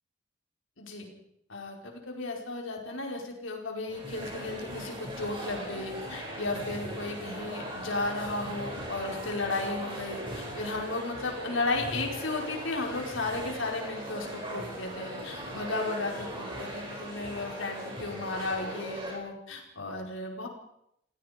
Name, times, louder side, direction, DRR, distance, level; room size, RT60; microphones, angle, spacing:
voice 1, 0.8-1.1 1.5-20.5, left 3 dB, 85° left, 1 dB, 5.0 m, -34 dB
sound 1, 3.9-19.2, right 1 dB, 25° right, 7.3 m, -39 dB
29.5 x 16.5 x 5.2 m, 0.76 s
head